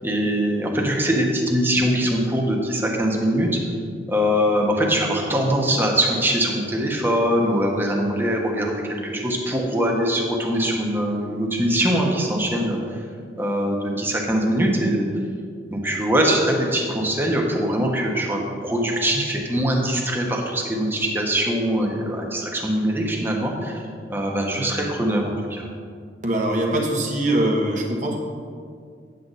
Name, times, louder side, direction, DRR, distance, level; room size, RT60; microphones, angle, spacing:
voice 1, 0.0-3.5 4.1-13.0 13.4-15.1 15.7-23.8 24.1-25.7, equal, 15° right, 0 dB, 1.2 m, -22 dB
voice 2, 26.2-28.2, right 1 dB, 45° right, 0 dB, 1.3 m, -22 dB
9.5 x 8.0 x 4.1 m, 2.1 s
head